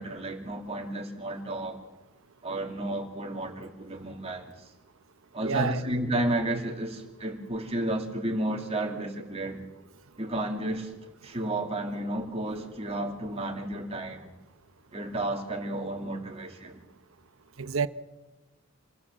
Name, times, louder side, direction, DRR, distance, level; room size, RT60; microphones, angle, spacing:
voice 1, 0.0-1.8 2.4-4.5 5.3-9.6 10.2-10.9 11.2-14.3 14.9-16.8, right 1 dB, 30° right, 2.6 m, -32 dB
voice 2, 5.4-5.8 17.6-17.9, right 5 dB, 65° right, 0.9 m, -28 dB
27.0 x 19.0 x 7.5 m
head